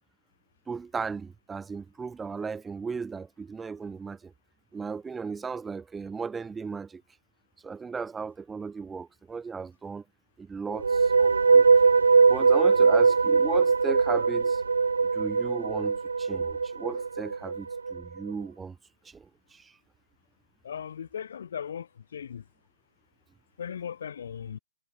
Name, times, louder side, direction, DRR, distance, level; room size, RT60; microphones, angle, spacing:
voice 1, 0.7-4.3 4.7-7.0 7.6-10.0 10.4-11.6 12.3-14.6 15.1-18.8 19.0-19.8, right 5 dB, 10° right, 3.8 m, -36 dB
sound 1, 10.7-18.0, right 4 dB, 80° right, 1.2 m, -21 dB
voice 2, 20.6-21.9 22.1-22.4 23.6-24.6, left 8 dB, 60° left, 1.1 m, -37 dB
hypercardioid pair, 140°, 0 cm